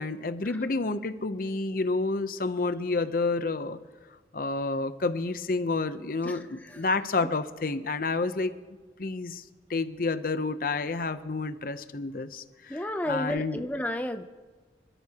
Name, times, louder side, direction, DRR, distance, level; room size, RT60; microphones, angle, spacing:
voice 1, 0.0-3.8 4.3-8.5 9.0-9.4 9.7-12.8 13.1-13.6, left 3 dB, 50° left, 11 dB, 0.7 m, -29 dB
voice 2, 6.2-6.9 12.7-14.2, left 1 dB, 10° left, 5 dB, 0.5 m, -33 dB
26.0 x 13.0 x 2.9 m, 1.4 s
head